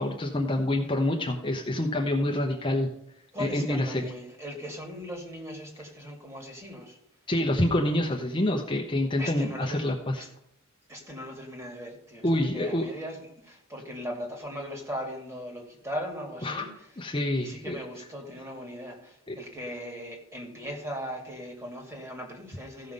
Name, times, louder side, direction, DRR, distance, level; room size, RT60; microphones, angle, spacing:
voice 1, 0.0-2.9 3.4-4.0 7.3-10.2 12.2-12.9 16.4-16.7 17.0-17.8 19.3-19.4, left 1 dB, 25° left, 1 dB, 0.9 m, -27 dB
voice 2, 3.3-7.0 9.2-9.8 10.2-10.3 10.9-16.9 17.4-22.9, equal, 15° right, 1 dB, 2.3 m, -39 dB
15.0 x 5.7 x 5.4 m, 0.72 s
head